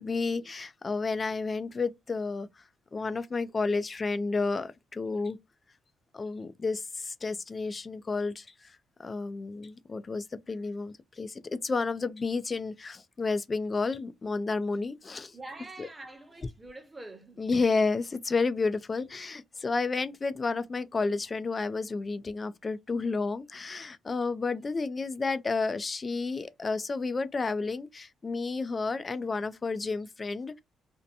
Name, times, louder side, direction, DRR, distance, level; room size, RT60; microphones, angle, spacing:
voice 1, 0.0-2.6 2.9-5.4 6.1-15.4 15.8-15.9 17.4-30.6, left 4 dB, 30° left, 0.4 m, -31 dB
voice 2, 15.3-17.4, right 2 dB, 15° right, 1.0 m, -45 dB
2.6 x 2.1 x 2.5 m
cardioid pair, 90°, 0 cm